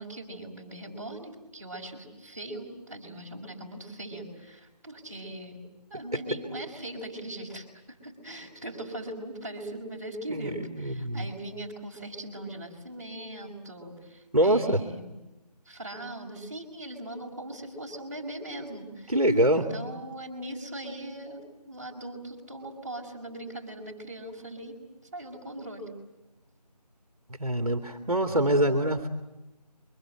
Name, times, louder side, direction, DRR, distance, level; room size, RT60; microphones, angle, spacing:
voice 1, 0.0-5.6 5.9-15.2 15.7-19.1 19.5-24.8 25.1-25.9, right 1 dB, 25° right, -3 dB, 4.7 m, -40 dB
voice 2, 10.3-11.3 14.3-14.8 19.1-19.6 27.4-29.1, right 1 dB, 60° right, 6 dB, 2.3 m, -24 dB
28.5 x 24.0 x 7.9 m, 0.99 s
figure-of-eight pair, 170°, 21 cm